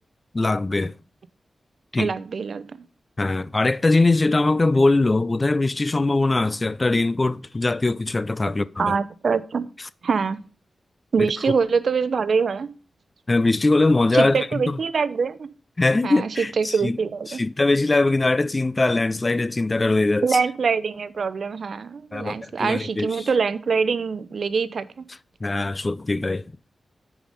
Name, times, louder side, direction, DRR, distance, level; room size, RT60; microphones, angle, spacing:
voice 1, 0.3-1.0 1.9-2.1 3.2-9.0 11.2-11.3 13.3-14.8 15.8-17.0 17.3-20.3 22.1-23.3 25.4-26.4, left 2 dB, 30° left, 0.4 m, -21 dB
voice 2, 2.0-2.8 8.8-9.7 10.0-10.4 11.1-12.7 14.1-15.5 16.0-17.4 20.2-25.0, right 5 dB, 70° right, 0.6 m, -24 dB
9.3 x 5.0 x 5.1 m
cardioid pair, 75°, 0 cm